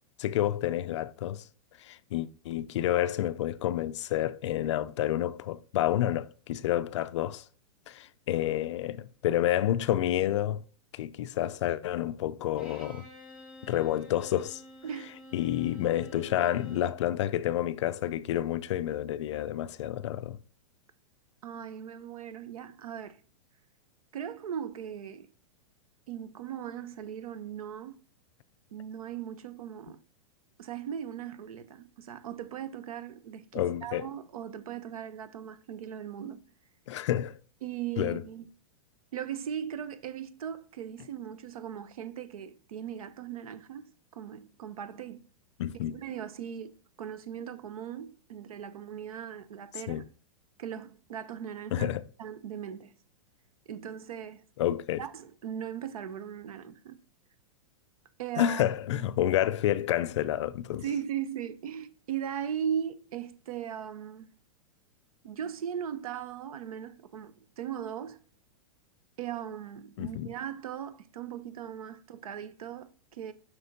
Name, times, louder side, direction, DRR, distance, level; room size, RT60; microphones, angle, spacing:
voice 1, 0.2-1.5 1.8-7.4 7.9-10.6 10.9-13.1 13.7-14.6 15.3-20.4 33.5-34.1 36.9-37.4 38.0-38.2 45.6-45.9 49.9-50.0 51.7-52.0 54.6-55.0 58.4-60.8 70.0-70.3, left 12 dB, 55° left, 0.4 m, -29 dB
Bowed string instrument, 12.6-17.1, equal, 5° right, 2.0 m, -50 dB
voice 2, 21.4-23.2 24.1-25.3 26.1-28.0 28.7-30.0 30.6-36.4 37.6-38.5 39.1-45.2 45.9-50.0 50.6-51.9 52.2-52.9 53.7-54.4 55.0-57.0 58.2-58.6 58.9-59.0 60.8-64.3 65.2-68.2 69.2-73.3, right 9 dB, 90° right, 0.9 m, -38 dB
7.7 x 5.8 x 2.8 m
supercardioid pair, 165°, 18 cm